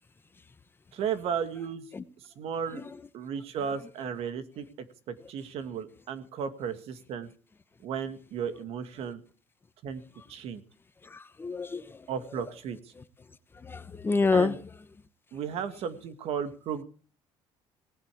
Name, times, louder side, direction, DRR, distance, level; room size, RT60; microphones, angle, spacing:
voice 1, 0.9-1.9 2.2-2.8 3.1-4.7 5.1-7.3 7.8-9.2 9.8-10.0 10.3-10.6 12.1-12.8 14.3-14.6 15.3-16.8, right 7 dB, 70° right, 2.0 m, -34 dB
voice 2, 11.0-12.0 13.6-14.6, left 4 dB, 20° left, 1.0 m, -28 dB
19.0 x 8.2 x 8.4 m
cardioid pair, 130°, 11 cm